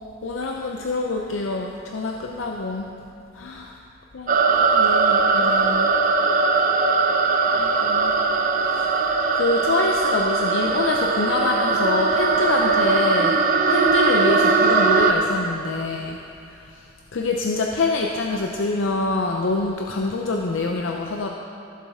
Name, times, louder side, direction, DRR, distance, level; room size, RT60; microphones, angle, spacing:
voice 1, 0.2-2.9 3.3-3.7 4.1-5.9 7.5-8.1 8.7-13.4 13.7-16.2 16.5-16.8 17.1-21.3, left 3 dB, 85° left, 1 dB, 0.6 m, -26 dB
sound 1, 4.3-15.1, right 4 dB, 45° right, 0.6 m, -20 dB
15.5 x 7.4 x 3.6 m, 2.6 s
head